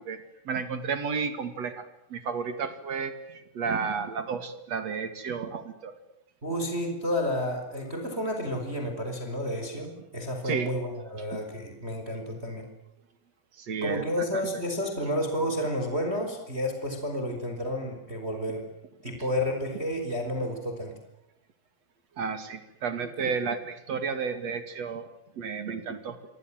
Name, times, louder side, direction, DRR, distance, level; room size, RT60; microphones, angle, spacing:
voice 1, 0.0-5.9 10.4-10.7 11.3-11.4 13.5-14.4 22.2-25.1 25.3-26.2, right 5 dB, 45° right, 10 dB, 2.5 m, -32 dB
voice 2, 6.4-12.6 13.8-18.6 19.0-20.9, left 1 dB, 10° right, 4 dB, 5.1 m, -31 dB
28.5 x 25.0 x 7.7 m, 0.86 s
omnidirectional pair, 6.0 m